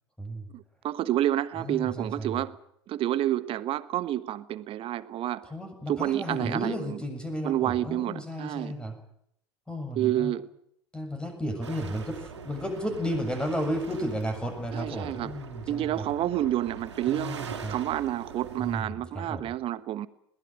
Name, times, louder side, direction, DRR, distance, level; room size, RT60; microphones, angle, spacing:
voice 1, 0.5-2.6 2.9-5.5 5.9-7.0 7.4-8.7 10.0-10.5 14.7-15.3 15.7-20.1, right 13 dB, 40° right, 1.3 m, -29 dB
voice 2, 1.6-2.4 5.4-9.0 9.7-10.3 10.9-16.1 17.1-17.8 18.6-19.5, equal, 5° left, 7.2 m, -33 dB
sound 1, 11.6-18.8, right 6 dB, 80° right, 3.2 m, -43 dB
21.0 x 19.0 x 9.1 m
figure-of-eight pair, 80°, 14 cm